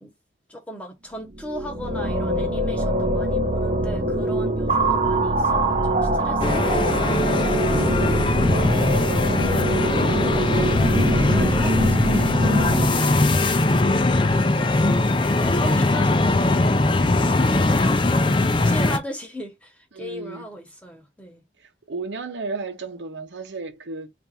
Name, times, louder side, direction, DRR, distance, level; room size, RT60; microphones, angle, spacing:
voice 1, 0.5-7.9 10.3-14.8 15.4-16.8 18.2-21.4, equal, 5° left, 0.8 m, -38 dB
sound 1, 1.3-12.9, right 1 dB, 35° right, 0.5 m, -23 dB
sound 2, 6.4-19.0, left 2 dB, 30° left, 0.4 m, -20 dB
voice 2, 19.9-20.5 21.9-24.1, right 3 dB, 85° right, 0.8 m, -33 dB
3.4 x 2.6 x 4.1 m
head